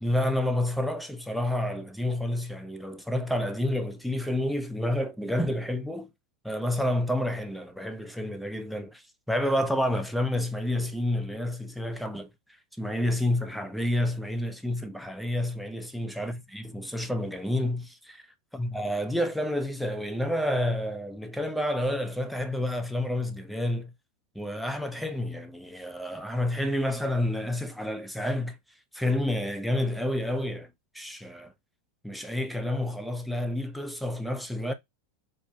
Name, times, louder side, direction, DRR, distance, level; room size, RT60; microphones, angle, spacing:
voice 1, 0.0-6.1 6.4-12.3 12.8-18.2 18.5-23.9 24.4-28.6 28.9-31.5 32.0-34.7, left 1 dB, ahead, 0.6 m, -29 dB
4.4 x 2.1 x 2.7 m
hypercardioid pair, 100°, 0 cm